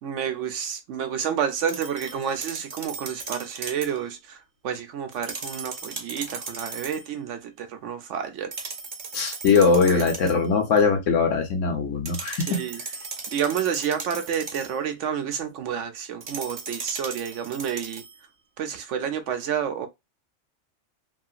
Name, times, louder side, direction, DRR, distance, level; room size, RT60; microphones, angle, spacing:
voice 1, 0.0-8.6 9.9-10.0 12.5-12.8 13.3-18.0 18.6-19.9, right 8 dB, 75° right, 1.0 m, -29 dB
sound 1, 1.7-4.0 5.1-7.1 8.5-10.5 12.1-14.8 16.2-18.2, right 4 dB, 50° right, 0.7 m, -37 dB
voice 2, 9.1-12.6, left 5 dB, 75° left, 1.1 m, -21 dB
2.9 x 2.7 x 2.4 m
omnidirectional pair, 1.3 m